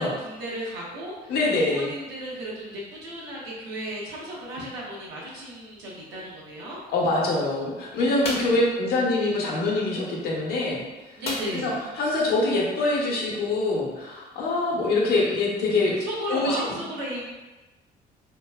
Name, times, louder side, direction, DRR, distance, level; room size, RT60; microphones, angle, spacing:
voice 1, 0.0-1.4 1.6-6.8 8.0-8.6 11.2-11.8 16.0-17.3, right 1 dB, 85° right, -5 dB, 0.9 m, -34 dB
voice 2, 1.3-1.9 6.9-10.8 11.5-16.0 16.3-16.8, left 2 dB, 65° left, -3 dB, 0.7 m, -24 dB
sound 1, 8.2-8.6 11.2-11.8 12.2-12.3 12.7-12.9, left 2 dB, 35° left, 0.6 m, -32 dB
3.0 x 2.0 x 2.2 m, 1.1 s
cardioid pair, 110°, 17 cm